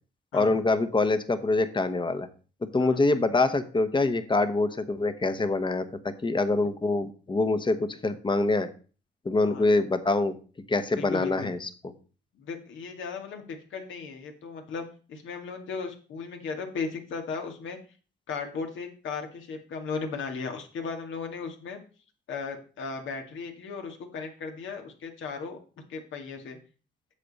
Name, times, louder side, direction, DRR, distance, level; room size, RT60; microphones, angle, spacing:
voice 1, 0.3-2.3 2.6-8.7 9.2-10.4 10.7-11.7, left 3 dB, 25° left, 10 dB, 1.1 m, -25 dB
voice 2, 11.0-11.5 12.4-17.8 18.3-21.8 22.3-25.6 25.9-26.6, left 5 dB, 75° left, 4 dB, 1.9 m, -36 dB
8.4 x 6.9 x 4.1 m, 0.36 s
cardioid pair, 90°, 20 cm